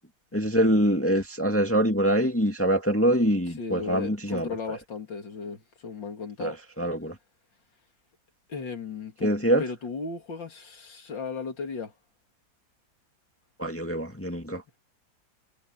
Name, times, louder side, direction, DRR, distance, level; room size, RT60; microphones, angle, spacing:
voice 1, 0.3-4.5 6.4-7.1 9.2-9.6 13.6-14.6, equal, 5° left, 2.0 m, -24 dB
voice 2, 3.5-6.6 8.5-9.3 9.6-11.9, left 5 dB, 75° left, 3.5 m, -36 dB
omnidirectional pair, 2.0 m